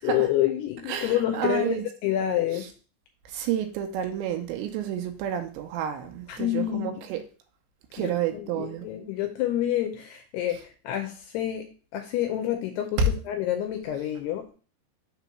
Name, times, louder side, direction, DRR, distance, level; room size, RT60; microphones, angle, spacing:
voice 1, 0.0-1.8 2.0-2.7 6.3-7.0 8.0-14.5, left 12 dB, 80° left, 2.5 m, -28 dB
voice 2, 0.9-1.8 3.3-7.2 7.9-8.9 13.0-13.1, right 6 dB, 90° right, 3.0 m, -29 dB
6.8 x 3.0 x 5.8 m
omnidirectional pair, 5.1 m